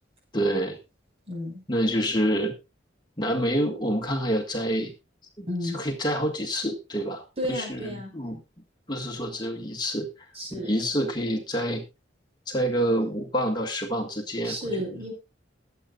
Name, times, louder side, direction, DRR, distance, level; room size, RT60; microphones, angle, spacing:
voice 1, 0.3-0.8 1.7-2.5 3.2-4.9 5.4-8.4 8.9-10.1 10.5-11.8 12.5-14.6, equal, 25° left, 2 dB, 1.7 m, -27 dB
voice 2, 1.3-1.6 5.5-5.8 7.4-8.1 10.3-10.8 14.4-15.1, equal, 35° right, 2 dB, 5.6 m, -32 dB
22.0 x 8.3 x 2.4 m, 0.26 s
head